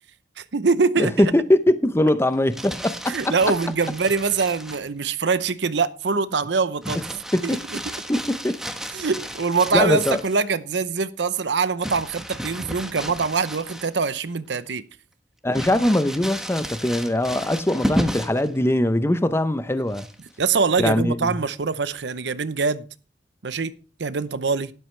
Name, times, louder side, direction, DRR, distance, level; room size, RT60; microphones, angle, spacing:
voice 1, 0.4-1.3 3.1-7.0 7.4-7.8 8.9-14.8 20.4-22.8 23.4-23.7 24.0-24.7, right 4 dB, 70° right, 0.7 m, -23 dB
voice 2, 1.0-3.3 7.3-7.6 8.1-8.6 9.7-10.2 15.4-20.1 20.8-21.4, left 1 dB, 15° left, 0.7 m, -21 dB
Crumpling crinkling, 2.3-4.9 6.8-10.4 11.8-14.2 14.6-14.7 15.5-18.5 19.9-20.4, equal, 5° right, 1.1 m, -33 dB
12.5 x 12.0 x 3.3 m
head